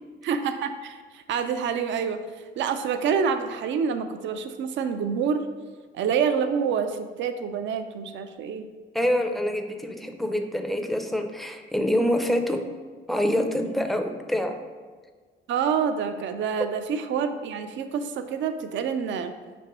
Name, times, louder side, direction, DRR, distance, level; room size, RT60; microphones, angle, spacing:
voice 1, 0.2-2.2 2.6-5.4 5.9-8.7 15.5-19.3, right 6 dB, 70° right, 9 dB, 0.4 m, -27 dB
voice 2, 8.9-12.7 13.1-14.5, left 1 dB, ahead, 4 dB, 0.4 m, -26 dB
6.1 x 2.9 x 3.0 m, 1.5 s
cardioid pair, 90°, 20 cm